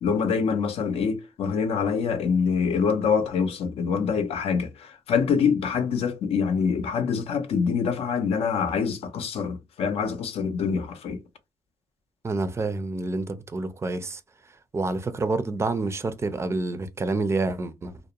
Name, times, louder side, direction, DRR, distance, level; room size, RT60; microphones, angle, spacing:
voice 1, 0.0-11.2, left 6 dB, 80° left, 0.5 m, -25 dB
voice 2, 12.2-14.2 14.7-18.0, right 3 dB, 25° right, 0.4 m, -28 dB
2.3 x 2.0 x 2.8 m
cardioid pair, 100°, 10 cm